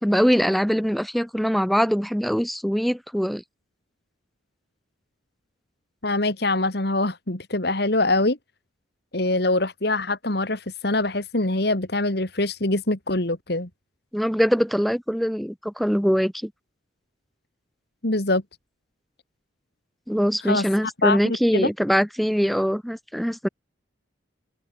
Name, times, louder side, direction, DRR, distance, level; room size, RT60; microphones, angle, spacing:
voice 1, 0.0-3.4 14.1-16.5 20.1-23.5, equal, ahead, 5.2 m, -22 dB
voice 2, 6.0-8.4 9.1-13.7 18.0-18.4 20.4-20.7 21.0-21.7, left 2 dB, 55° left, 2.4 m, -24 dB
head